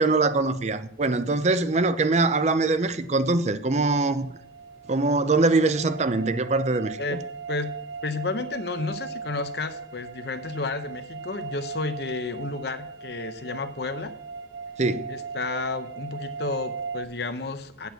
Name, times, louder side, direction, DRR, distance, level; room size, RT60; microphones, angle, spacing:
voice 1, 0.0-4.3 4.9-7.2 14.8-15.1, right 3 dB, 40° right, 0.6 m, -23 dB
sound 1, 3.9-17.1, right 5 dB, 85° right, 0.6 m, -38 dB
voice 2, 8.0-14.1 15.1-17.9, left 3 dB, 60° left, 0.9 m, -31 dB
8.3 x 6.1 x 8.2 m
head